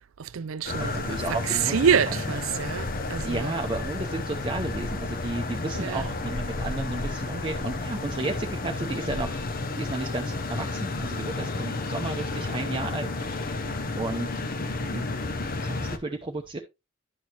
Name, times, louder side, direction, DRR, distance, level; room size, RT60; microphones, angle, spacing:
voice 1, 0.2-3.6 5.7-6.1, right 7 dB, 90° right, 0.5 m, -27 dB
sound 1, 0.7-16.0, left 3 dB, 45° left, 0.7 m, -31 dB
voice 2, 0.8-1.8 2.1-2.2 3.2-9.4 9.8-13.4 14.0-14.3 14.9-15.0 15.6-16.6, right 2 dB, 25° right, 0.7 m, -33 dB
11.0 x 6.2 x 2.9 m
head